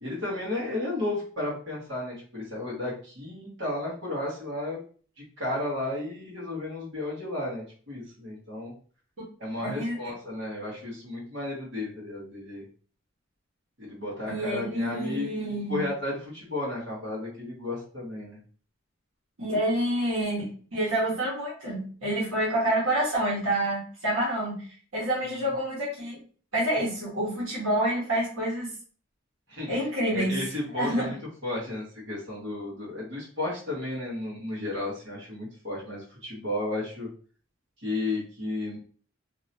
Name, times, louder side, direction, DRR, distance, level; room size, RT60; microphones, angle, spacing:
voice 1, 0.0-4.8 5.4-8.7 9.4-12.6 13.8-15.3 15.7-18.4 25.2-25.5 29.5-29.8 30.1-37.1 37.8-38.8, left 2 dB, 60° right, -7 dB, 1.6 m, -33 dB
voice 2, 9.6-10.0 14.3-15.8 19.4-24.6 24.9-26.2 26.5-28.7 29.7-30.4 30.7-31.1, right 1 dB, 90° right, -6 dB, 1.5 m, -28 dB
3.0 x 2.8 x 2.7 m, 0.42 s
head